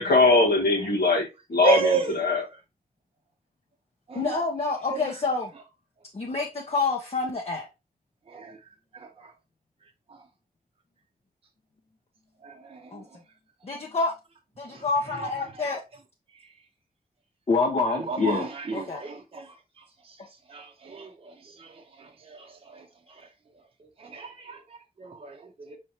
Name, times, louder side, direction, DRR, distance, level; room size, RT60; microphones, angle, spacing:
voice 1, 0.0-2.4, left 3 dB, 85° left, 1.4 m, -21 dB
voice 2, 1.6-2.2 4.1-4.4 4.9-5.2 8.3-8.6 8.9-9.3 10.1-10.2 12.4-13.0 14.7-15.7 17.9-19.5 20.0-20.2 20.5-23.3 24.0-25.8, right 5 dB, 40° right, 0.7 m, -33 dB
voice 3, 4.1-5.5 6.1-7.7 12.9-13.2 13.6-14.1 14.6-15.8 17.5-19.0, left 4 dB, 40° left, 0.7 m, -27 dB
5.3 x 3.3 x 2.9 m
wide cardioid pair, 105°, 16 cm